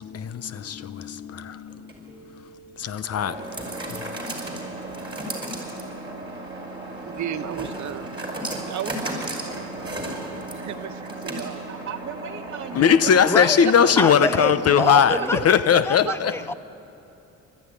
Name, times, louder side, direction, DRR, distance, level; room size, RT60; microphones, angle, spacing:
voice 1, 0.0-2.4 2.8-3.4 3.9-4.2 12.8-15.2 15.4-16.3, left 8 dB, 55° left, 0.9 m, -20 dB
sound 1, 1.7-15.7, right 1 dB, 15° right, 5.5 m, -35 dB
voice 2, 6.3-8.2 8.7-11.7 12.8-13.7 14.0-14.1 16.0-16.2, right 10 dB, 70° right, 1.2 m, -35 dB
voice 3, 11.7-15.5 16.1-16.2, right 7 dB, 40° right, 1.4 m, -35 dB
voice 4, 13.2-13.6 14.0-14.5 14.8-16.5, left 2 dB, 10° left, 0.5 m, -26 dB
29.0 x 13.5 x 9.7 m
cardioid pair, 90°, 30 cm